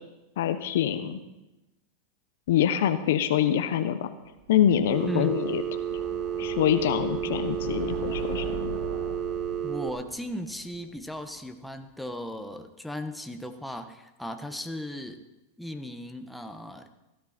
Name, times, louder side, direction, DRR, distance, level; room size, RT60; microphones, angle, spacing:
voice 1, 0.4-1.2 2.5-4.1 4.5-5.8 6.4-8.8, left 10 dB, 70° left, 10 dB, 1.1 m, -25 dB
sound 1, 4.4-11.5, right 2 dB, 65° right, 2.9 m, -41 dB
Telephone, 4.9-9.9, right 9 dB, 40° right, 1.2 m, -31 dB
voice 2, 5.1-5.4 9.6-15.2 15.6-16.9, left 1 dB, ahead, 5 dB, 1.3 m, -36 dB
16.5 x 13.0 x 4.4 m, 0.97 s
hypercardioid pair, 110°, 0 cm